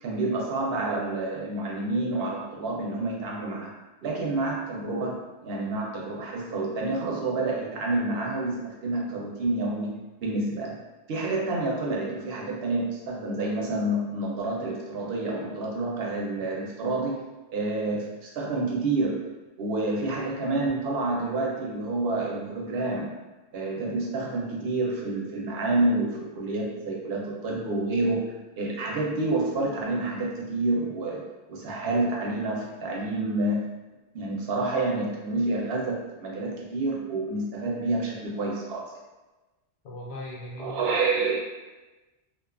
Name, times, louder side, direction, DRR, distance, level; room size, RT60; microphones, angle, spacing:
voice 1, 0.0-3.7 4.0-10.8 11.1-17.2 17.5-19.3 19.6-23.1 23.5-31.2 31.5-33.6 34.1-38.9 40.6-41.4, right 2 dB, 75° right, -2 dB, 0.8 m, -28 dB
voice 2, 39.8-40.8, left 1 dB, 85° left, -2 dB, 0.9 m, -38 dB
2.4 x 2.2 x 2.3 m, 1.1 s
omnidirectional pair, 1.1 m